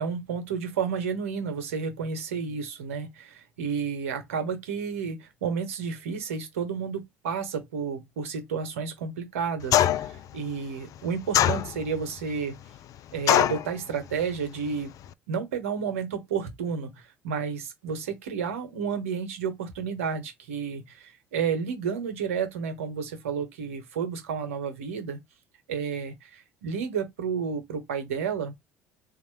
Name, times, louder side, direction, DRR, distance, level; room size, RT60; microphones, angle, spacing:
voice 1, 0.0-12.6 13.1-14.9 15.3-25.2 25.7-28.5, right 6 dB, 85° right, 1.1 m, -31 dB
sound 1, 9.7-10.2 11.3-12.0 13.3-13.7, left 11 dB, 50° left, 0.3 m, -21 dB
3.6 x 2.5 x 3.2 m
hypercardioid pair, 60°, 7 cm